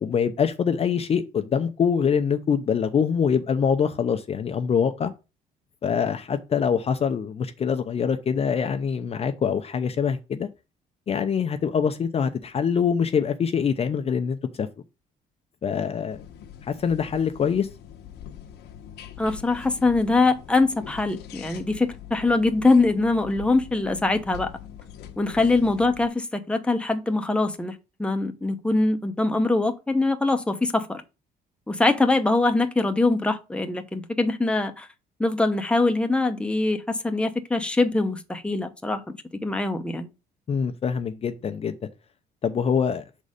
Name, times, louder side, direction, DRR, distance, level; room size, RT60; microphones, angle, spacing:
voice 1, 0.0-5.1 5.8-10.5 11.1-14.7 15.6-16.2 16.6-17.7 40.5-41.8 42.4-43.0, left 7 dB, 35° left, 0.7 m, -24 dB
sound 1, 16.1-26.1, left 10 dB, 80° left, 1.1 m, -43 dB
voice 2, 19.2-24.5 25.2-31.0 31.7-34.9 35.2-39.0 39.4-40.1, left 2 dB, 5° left, 0.9 m, -23 dB
6.3 x 4.1 x 5.0 m
cardioid pair, 110°, 17 cm